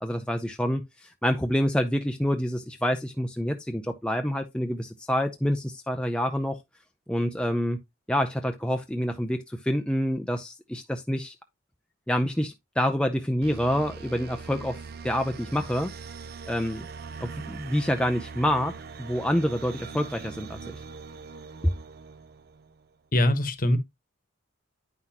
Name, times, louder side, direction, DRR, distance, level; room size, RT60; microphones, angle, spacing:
voice 1, 0.0-6.6 7.1-7.8 8.1-11.3 12.1-15.9 16.5-16.9 17.2-20.6, equal, 5° left, 0.5 m, -27 dB
sound 1, 13.4-22.8, right 5 dB, 50° right, 0.5 m, -42 dB
voice 2, 23.1-23.8, left 1 dB, 45° left, 1.1 m, -22 dB
9.4 x 5.7 x 2.9 m
head